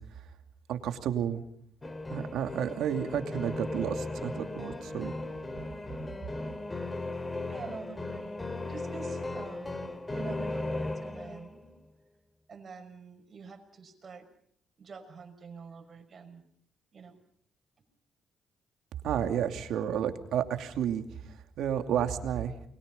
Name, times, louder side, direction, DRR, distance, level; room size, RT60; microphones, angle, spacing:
voice 1, 0.7-1.4 2.1-5.1 19.0-22.5, right 9 dB, 80° right, 6 dB, 2.6 m, -31 dB
sound 1, 1.8-11.6, left 2 dB, 20° left, 2.7 m, -37 dB
voice 2, 7.4-8.4 8.6-11.7 12.5-14.3 14.8-16.4 16.9-17.2, right 5 dB, 45° right, 6 dB, 6.0 m, -46 dB
30.0 x 22.5 x 5.5 m, 0.65 s
cardioid pair, 90°, 0 cm